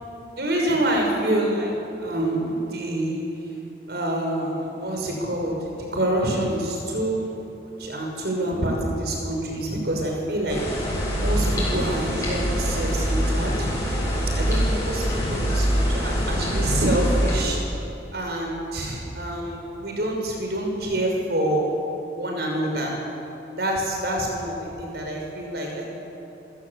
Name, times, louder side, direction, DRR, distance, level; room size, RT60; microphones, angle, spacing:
voice 1, 0.3-1.7 2.0-3.2 3.9-5.6 5.9-10.6 11.2-13.7 14.4-17.6 18.1-21.6 22.2-22.9 23.6-25.9, right 1 dB, 60° right, 0 dB, 6.1 m, -26 dB
sound 1, 10.5-17.4, equal, 20° left, 7.8 m, -24 dB
28.0 x 16.0 x 8.5 m, 3.0 s
head